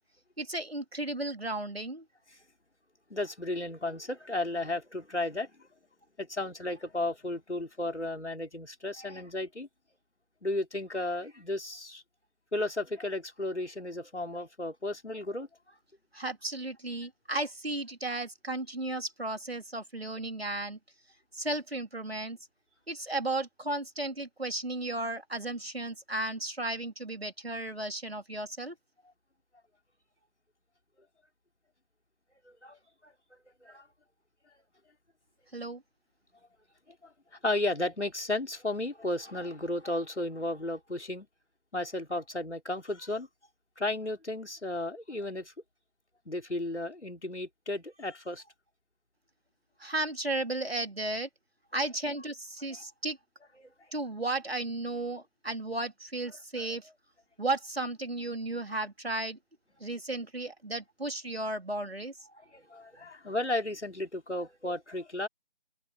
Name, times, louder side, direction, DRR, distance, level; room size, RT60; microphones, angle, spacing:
voice 1, 0.4-2.0 16.1-20.8 21.3-22.4 22.9-28.7 35.5-35.8 49.8-51.3 51.7-53.2 53.9-56.9 57.4-59.4 59.8-62.1, right 2 dB, 60° right, 3.1 m, -34 dB
voice 2, 3.1-5.7 6.2-9.7 10.4-12.0 12.5-15.5 32.4-33.1 33.6-33.9 37.0-37.1 37.4-41.3 41.7-43.3 43.8-45.5 46.3-48.5 52.7-52.8 53.6-53.7 56.6-56.7 62.4-65.3, left 2 dB, 80° left, 4.6 m, -34 dB
open air
figure-of-eight pair, 180°, 34 cm